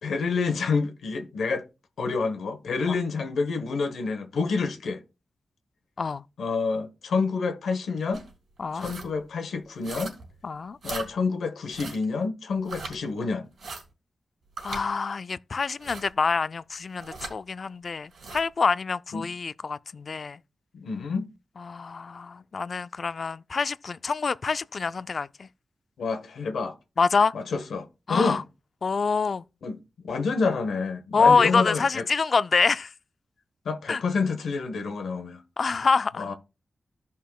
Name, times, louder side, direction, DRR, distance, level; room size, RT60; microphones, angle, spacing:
voice 1, 0.0-1.7 2.0-5.0 6.4-8.2 8.7-10.1 10.8-13.5 19.1-19.3 20.7-21.3 26.0-26.8 27.3-28.4 29.6-29.8 30.0-32.0 33.6-35.4 36.2-36.3, left 4 dB, 90° left, 1.0 m, -28 dB
sound 1, 8.1-8.3 8.7-9.1 9.8-10.3 10.8-11.1 11.7-12.1 12.7-13.0 13.6-13.8 14.6-14.8 15.8-16.1 17.0-17.3 18.1-18.4, right 3 dB, 80° right, 3.7 m, -38 dB
voice 2, 8.6-8.9 10.4-10.8 14.6-20.4 21.7-25.3 27.0-27.3 28.1-28.4 28.8-29.4 31.1-32.9 33.9-34.0 35.6-36.3, left 5 dB, 55° left, 0.3 m, -26 dB
15.0 x 5.5 x 2.3 m
cardioid pair, 75°, 0 cm